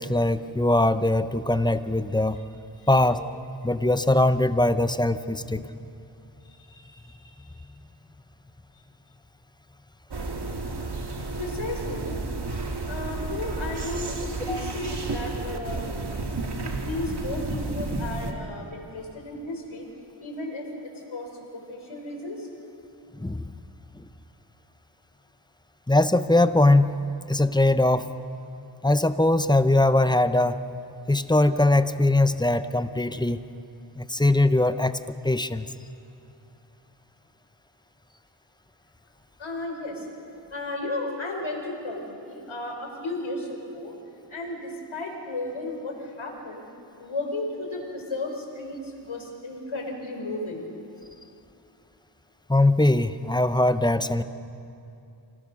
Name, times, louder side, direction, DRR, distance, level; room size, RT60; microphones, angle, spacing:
voice 1, 0.0-2.4 2.9-5.7 14.5-14.7 23.1-23.4 23.9-24.0 25.9-27.0 27.3-28.1 28.8-30.6 31.1-33.4 34.0-35.0 35.2-35.7 52.5-54.2, left 2 dB, 10° left, 11 dB, 0.7 m, -21 dB
voice 2, 6.4-7.6 11.4-12.2 12.9-15.8 16.6-19.9 20.2-20.7 21.1-22.5 39.4-40.1 40.5-43.9 44.3-46.6 47.0-50.7, left 2 dB, 75° left, 2 dB, 4.0 m, -34 dB
sound 1, 10.1-18.3, right 3 dB, 55° right, 2.2 m, -32 dB
26.5 x 18.5 x 6.3 m, 2.7 s
wide cardioid pair, 70°, 47 cm